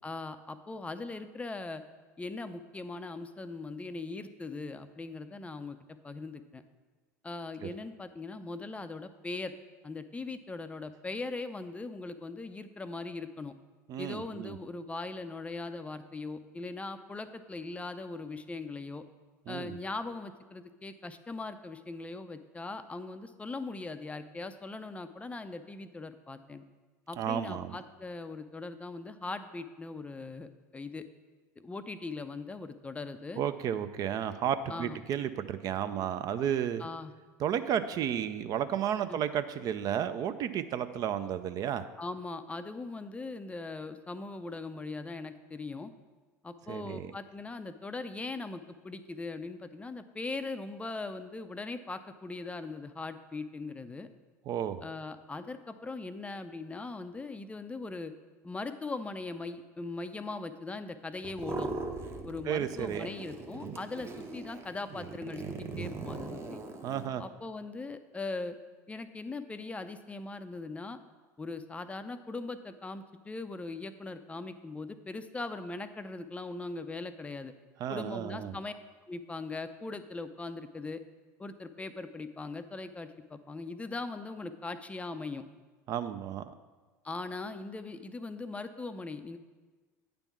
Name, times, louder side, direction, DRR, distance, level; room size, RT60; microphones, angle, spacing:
voice 1, 0.0-1.8 2.2-5.8 6.0-6.6 7.2-9.5 9.8-13.5 14.0-19.0 19.5-26.6 27.1-31.0 31.6-33.4 34.7-35.0 36.8-37.1 39.1-39.2 42.0-45.9 46.4-54.1 54.8-58.1 58.4-61.7 62.2-66.6 67.2-68.6 68.9-71.0 71.4-77.5 77.9-78.7 79.1-81.0 81.4-85.4 87.0-89.4, left 3 dB, 15° left, 10 dB, 0.4 m, -40 dB
voice 2, 13.9-14.6 19.5-19.8 27.2-27.8 33.4-36.8 37.4-41.9 46.7-47.1 54.5-54.8 62.5-63.1 66.8-67.2 77.8-78.6 85.9-86.5, right 9 dB, 45° right, 11 dB, 0.4 m, -32 dB
sound 1, 61.2-62.5 62.7-67.1, right 3 dB, 30° right, 0.8 m, -40 dB
9.0 x 3.5 x 6.0 m, 1.3 s
hypercardioid pair, 75°, 9 cm